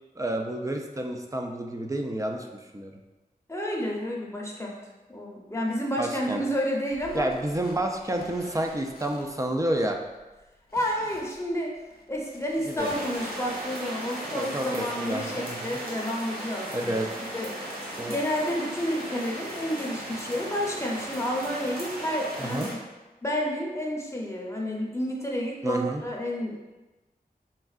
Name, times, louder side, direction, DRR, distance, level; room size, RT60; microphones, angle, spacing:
voice 1, 0.2-2.9 6.0-6.4 7.1-10.0 12.7-12.9 14.3-15.8 16.7-17.1 18.0-18.2 22.4-22.7 25.6-26.0, right 1 dB, 20° right, 3 dB, 0.4 m, -30 dB
voice 2, 3.5-4.8 5.1-7.3 10.7-11.7 12.1-17.0 17.3-22.8 23.2-26.6, equal, 20° left, -2 dB, 0.7 m, -30 dB
sound 1, 6.9-13.7, left 2 dB, 75° left, 0.5 m, -49 dB
sound 2, 12.8-22.7, right 1 dB, 90° right, 1.0 m, -36 dB
4.3 x 3.5 x 2.4 m, 1.1 s
wide cardioid pair, 75°, 16 cm